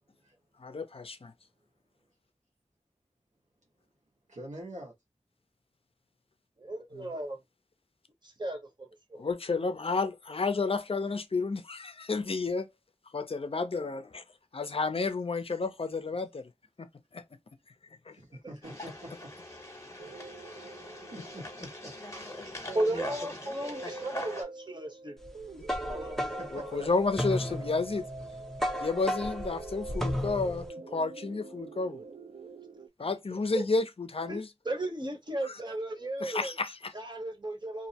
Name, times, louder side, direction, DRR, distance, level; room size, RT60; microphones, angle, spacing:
voice 1, 0.6-1.3 6.9-7.1 9.2-12.7 13.1-14.2 14.5-16.5 16.8-17.2 18.1-18.2 25.6-25.7 26.5-28.0 28.8-32.0 33.0-34.4 35.4-35.5 36.2-36.9, left 3 dB, 50° left, 0.4 m, -31 dB
voice 2, 4.3-4.9 18.1-19.3 20.4-20.7 20.9-21.9 26.2-26.9 27.5-27.8, right 1 dB, 80° right, 1.0 m, -46 dB
voice 3, 6.6-7.4 8.2-9.2 22.7-25.2 25.8-26.3 26.6-26.9 33.0-33.1 33.5-33.6 34.3-36.5 36.9-37.9, right 1 dB, 40° right, 0.8 m, -35 dB
sound 1, 18.6-24.4, left 1 dB, 25° left, 0.9 m, -42 dB
sound 2, 20.0-32.9, right 3 dB, 60° right, 0.4 m, -45 dB
sound 3, 25.3-30.7, left 1 dB, 5° left, 0.5 m, -34 dB
2.5 x 2.0 x 2.7 m
wide cardioid pair, 55°, 12 cm